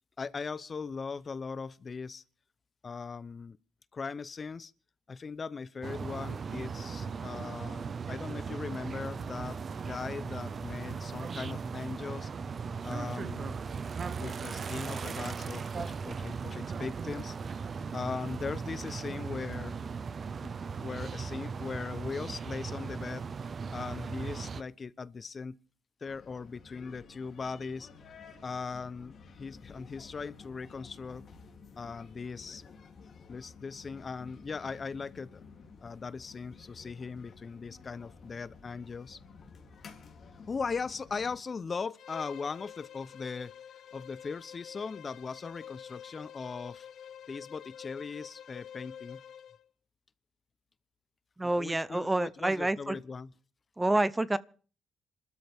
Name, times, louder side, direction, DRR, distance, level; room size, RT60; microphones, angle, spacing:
voice 1, 0.2-2.2 2.8-3.6 3.9-4.7 5.1-12.3 12.8-13.6 14.2-17.3 17.9-19.7 20.4-20.5 20.8-23.3 23.7-25.6 26.0-27.9 28.4-31.2 31.8-32.6 33.3-35.4 35.8-39.2 40.5-43.5 43.9-46.9 47.3-49.2 51.4-53.3, left 5 dB, 35° left, 0.8 m, -39 dB
sound 1, 5.8-24.6, right 5 dB, 45° right, 0.8 m, -38 dB
sound 2, 26.0-41.4, left 5 dB, 55° left, 3.1 m, -53 dB
Bowed string instrument, 42.0-49.6, left 9 dB, 70° left, 0.9 m, -48 dB
voice 2, 51.4-53.0 53.8-54.4, right 2 dB, 15° right, 0.7 m, -28 dB
27.5 x 13.0 x 3.6 m
cardioid pair, 90°, 0 cm